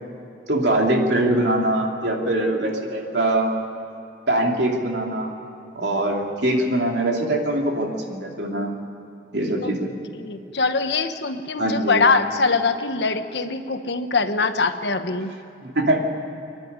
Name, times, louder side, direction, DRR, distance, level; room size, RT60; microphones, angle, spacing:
voice 1, 0.5-3.5 4.3-5.3 5.7-8.7 9.3-9.9 11.6-12.0 15.6-16.0, right 1 dB, 80° right, 0 dB, 3.0 m, -22 dB
voice 2, 10.1-15.3, left 4 dB, 80° left, 8 dB, 1.2 m, -23 dB
27.0 x 11.0 x 9.6 m, 2.7 s
head